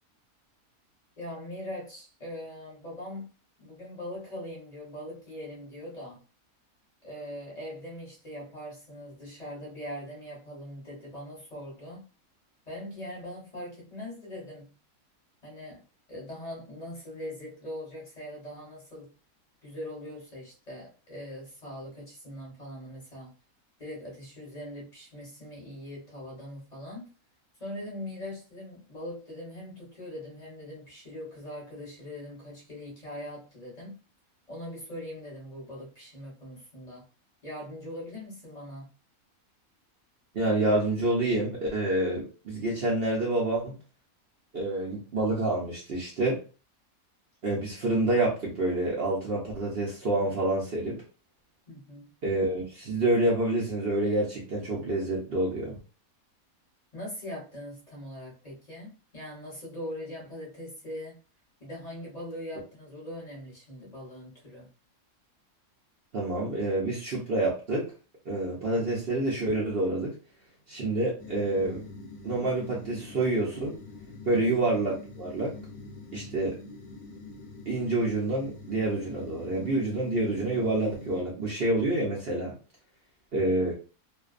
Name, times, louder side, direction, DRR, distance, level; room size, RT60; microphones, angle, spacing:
voice 1, 1.2-3.3 3.6-6.2 7.0-12.0 12.7-14.7 15.4-15.8 16.1-19.1 19.6-23.3 23.8-27.1 27.6-33.9 34.5-37.0 37.4-38.9 51.7-52.1 56.9-61.2 61.6-64.7 74.3-74.4, left 1 dB, 30° left, -4 dB, 1.0 m, -41 dB
voice 2, 40.3-43.8 44.5-46.4 47.4-51.0 52.2-55.8 66.1-67.8 68.3-70.1 70.7-71.8 72.2-73.8 74.2-75.5 76.1-76.5 77.7-82.5 83.3-83.7, right 2 dB, 55° right, -4 dB, 0.8 m, -27 dB
sound 1, 71.2-81.2, left 3 dB, 60° left, 0.8 m, -45 dB
2.6 x 2.2 x 2.4 m, 0.35 s
omnidirectional pair, 1.5 m